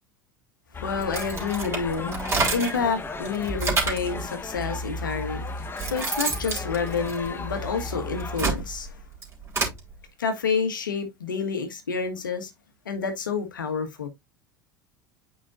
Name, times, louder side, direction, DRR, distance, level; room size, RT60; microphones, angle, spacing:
sound 1, 0.7-8.4, left 2 dB, 20° left, 1.1 m, -34 dB
voice 1, 0.8-9.0 10.2-12.5 12.8-14.1, left 5 dB, 90° left, 1.6 m, -29 dB
sound 2, 1.0-2.9 3.3-4.1 5.0-5.1 5.5-7.7 8.1-9.8, right 4 dB, 25° right, 3.3 m, -28 dB
8.6 x 5.5 x 2.5 m
hypercardioid pair, 80°, 10 cm